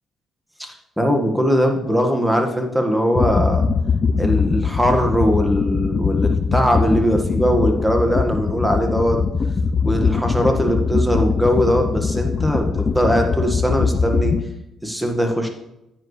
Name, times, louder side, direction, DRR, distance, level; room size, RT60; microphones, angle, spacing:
voice 1, 0.6-3.6 4.2-9.2 9.8-14.3 14.8-15.5, equal, 5° right, 3 dB, 1.8 m, -20 dB
sound 1, 3.1-14.4, left 5 dB, 40° left, 0.6 m, -21 dB
10.0 x 9.0 x 3.3 m, 0.87 s
cardioid pair, 90°, 0 cm